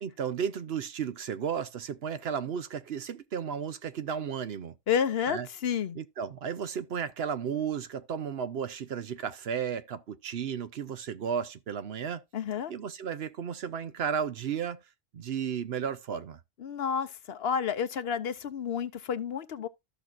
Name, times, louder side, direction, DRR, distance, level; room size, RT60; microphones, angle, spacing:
voice 1, 0.0-4.7 5.3-5.5 5.9-12.2 12.7-14.8 15.1-16.4, right 7 dB, 65° right, 1.0 m, -34 dB
voice 2, 4.9-6.0 12.3-12.7 16.6-19.7, left 7 dB, 65° left, 1.0 m, -30 dB
14.0 x 6.0 x 2.5 m
omnidirectional pair, 1.1 m